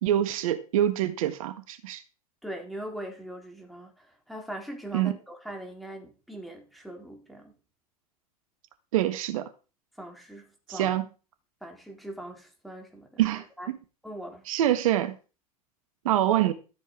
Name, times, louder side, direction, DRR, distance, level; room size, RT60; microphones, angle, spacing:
voice 1, 0.0-2.0 4.9-5.2 8.9-9.5 10.7-11.0 13.2-13.8 14.5-15.1 16.0-16.5, right 12 dB, 60° right, 1.6 m, -25 dB
voice 2, 2.4-7.5 10.0-11.0 11.6-13.2 13.6-13.7 14.0-14.4, right 1 dB, ahead, 3.8 m, -41 dB
13.5 x 7.2 x 4.8 m
figure-of-eight pair, 90°, 19 cm